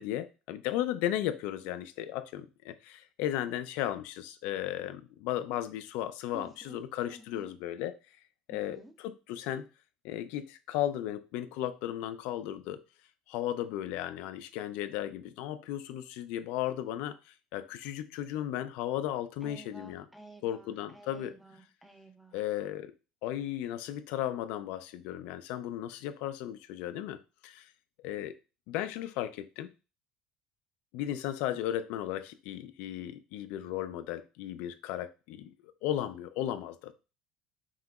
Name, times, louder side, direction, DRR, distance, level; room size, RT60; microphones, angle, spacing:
voice 1, 0.0-2.7 3.2-7.9 8.5-9.6 10.1-12.8 13.3-17.1 17.5-20.1 20.4-21.3 22.3-22.9 23.2-27.2 28.0-28.3 28.7-29.7 30.9-35.1 35.8-36.9, left 12 dB, 70° left, 0.4 m, -35 dB
voice 2, 6.3-6.8 7.1-7.5 8.5-8.9 19.4-22.4, right 1 dB, 5° right, 0.4 m, -52 dB
5.6 x 2.9 x 2.3 m
cardioid pair, 170°, 2 cm